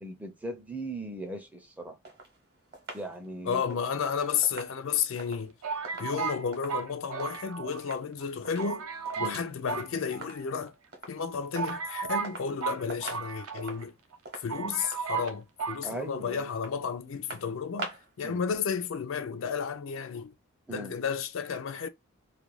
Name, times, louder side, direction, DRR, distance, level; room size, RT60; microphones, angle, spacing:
voice 1, 0.0-2.0 2.9-3.6 9.2-9.4 14.6-14.8 15.8-16.5 18.2-18.4 20.7-20.9, right 1 dB, 5° right, 0.4 m, -39 dB
sound 1, 2.0-7.5 7.8-8.1 8.4-9.5 9.8-10.6 10.9-11.2 11.6-12.6 12.9-18.2 18.5-18.6, right 2 dB, 45° right, 0.8 m, -45 dB
voice 2, 3.5-5.6 6.0-8.8 9.2-10.7 11.1-13.9 14.4-20.3 20.7-21.9, left 6 dB, 60° left, 0.3 m, -32 dB
sound 2, 4.2-4.9 5.6-7.9 8.2-8.3 8.6-9.4 9.7-10.6 11.2-11.3 11.5-13.8 14.1-14.2 14.5-15.3 15.6-15.8, right 6 dB, 75° right, 0.5 m, -35 dB
2.4 x 2.1 x 3.0 m
head